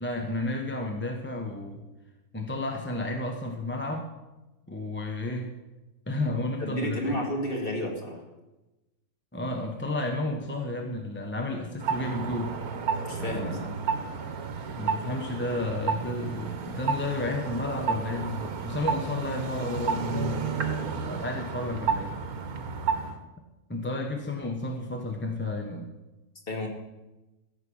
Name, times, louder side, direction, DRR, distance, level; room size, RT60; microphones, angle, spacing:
voice 1, 0.0-1.8 2.3-4.1 4.7-5.5 6.1-7.3 9.3-12.6 13.2-13.7 14.8-20.5 21.0-22.2 23.7-25.9, left 2 dB, 10° left, 3 dB, 1.0 m, -32 dB
voice 2, 6.6-8.2 13.0-13.7 26.5-26.7, equal, 40° left, 0 dB, 2.6 m, -31 dB
sound 1, 11.8-23.2, right 5 dB, 85° right, 1.6 m, -31 dB
14.5 x 5.9 x 8.6 m, 1.0 s
omnidirectional pair, 1.5 m